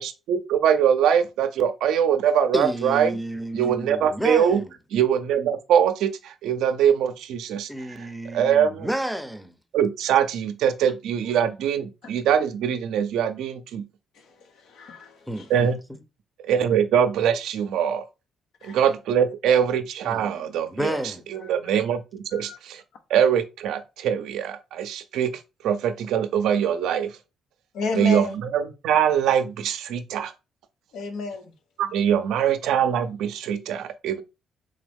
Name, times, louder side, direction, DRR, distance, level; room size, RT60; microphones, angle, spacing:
voice 1, 0.0-3.2 3.5-4.6 4.9-7.7 8.3-8.9 9.7-13.8 15.5-15.8 16.4-18.1 18.6-21.0 21.3-22.8 23.1-25.3 25.6-27.2 27.9-30.3 31.8-34.2, right 8 dB, 85° right, 0.5 m, -23 dB
voice 2, 2.5-4.7 7.7-9.6 15.3-16.0 20.0-21.3, right 1 dB, ahead, 0.6 m, -31 dB
voice 3, 14.4-15.4 18.6-18.8 22.3-22.6 27.7-28.4 30.9-31.5, left 4 dB, 80° left, 0.8 m, -32 dB
3.8 x 3.1 x 3.4 m
cardioid pair, 90°, 0 cm